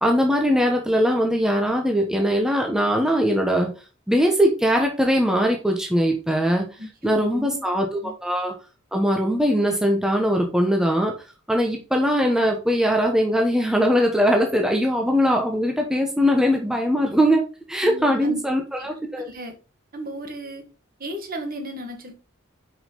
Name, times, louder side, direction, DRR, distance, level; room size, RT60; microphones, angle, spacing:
voice 1, 0.0-3.7 4.1-6.6 7.0-8.5 8.9-11.1 11.5-17.4 17.7-19.3, equal, 5° right, 1.1 m, -21 dB
voice 2, 6.8-7.6 8.0-8.1 17.8-18.4 18.8-19.6 19.9-20.6 21.0-22.1, equal, 45° right, 1.8 m, -35 dB
5.8 x 5.5 x 3.9 m
head